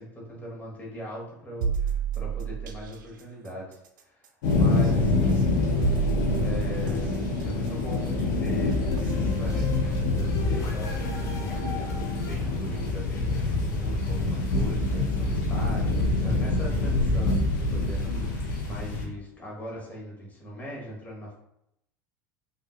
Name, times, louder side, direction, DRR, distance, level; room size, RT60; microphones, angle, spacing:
voice 1, 0.0-4.3 4.6-5.8 6.4-12.0 12.2-21.3, equal, 15° left, -4 dB, 1.2 m, -41 dB
sound 1, 1.6-2.9 4.8-4.9 5.8-7.2 9.0-9.1 9.6-9.7, right 7 dB, 85° right, 0.4 m, -29 dB
sound 2, 4.4-19.1, left 2 dB, 75° left, 1.0 m, -26 dB
sound 3, 8.9-14.6, left 3 dB, 30° left, 0.9 m, -41 dB
3.6 x 2.6 x 2.4 m, 0.79 s
hypercardioid pair, 90°, 10 cm